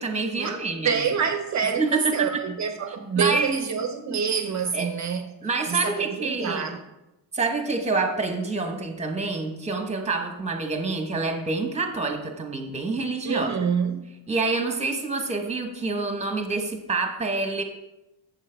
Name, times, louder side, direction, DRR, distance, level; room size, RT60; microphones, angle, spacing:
voice 1, 0.0-1.1 1.8-2.1 3.2-3.6 4.7-4.9 5.4-6.7 7.3-13.5 14.3-17.6, right 3 dB, 15° right, 1.0 m, -27 dB
voice 2, 0.8-5.3 5.7-6.8 13.2-14.0, right 6 dB, 40° right, 0.6 m, -26 dB
11.5 x 7.3 x 3.4 m
cardioid pair, 180°, 46 cm